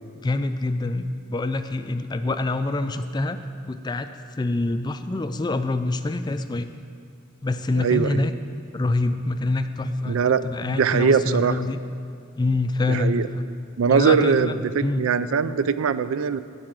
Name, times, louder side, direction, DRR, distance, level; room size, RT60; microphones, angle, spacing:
voice 1, 0.2-3.4 3.7-4.1 4.4-6.7 7.4-8.3 8.7-11.8 12.4-13.3 13.9-15.1, left 2 dB, 20° left, 9 dB, 0.3 m, -25 dB
voice 2, 7.7-8.2 10.1-11.7 12.9-13.3 13.8-16.4, right 6 dB, 85° right, 14 dB, 0.4 m, -22 dB
12.5 x 4.8 x 7.5 m, 2.3 s
head